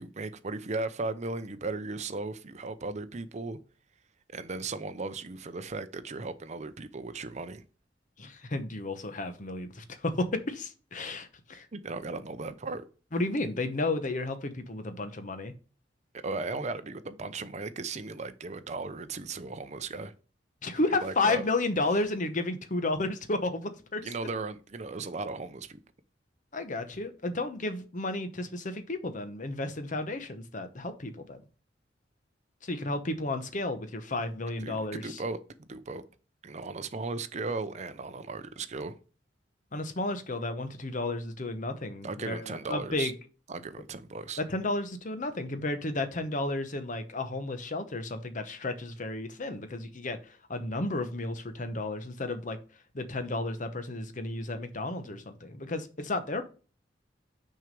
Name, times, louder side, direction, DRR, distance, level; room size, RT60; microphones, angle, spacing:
voice 1, 0.0-3.6 4.3-7.6 11.7-12.8 16.2-20.1 20.9-21.5 24.0-25.8 34.6-36.0 36.4-39.0 42.0-43.1 43.5-44.4, right 3 dB, 40° right, 0.6 m, -36 dB
voice 2, 8.2-11.7 13.1-15.5 20.6-24.1 26.5-31.4 32.6-35.2 39.7-43.1 44.4-52.6 52.9-56.4, left 2 dB, 45° left, 0.9 m, -32 dB
6.2 x 4.7 x 5.3 m
head